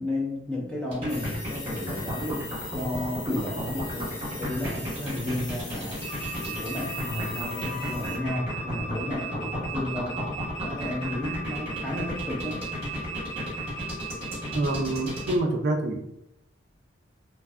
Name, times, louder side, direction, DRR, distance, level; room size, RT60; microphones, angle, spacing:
voice 1, 0.0-2.4 2.7-6.0 6.5-10.3 10.6-12.6, left 1 dB, 5° left, -4 dB, 0.5 m, -32 dB
sound 1, 0.9-15.4, equal, 30° right, 0.9 m, -34 dB
sound 2, 1.1-8.2, left 3 dB, 80° left, 0.9 m, -40 dB
sound 3, 6.0-15.3, right 3 dB, 40° left, 0.7 m, -38 dB
voice 2, 14.5-16.1, right 2 dB, 55° right, 3 dB, 0.3 m, -26 dB
2.6 x 2.2 x 2.3 m, 0.79 s
head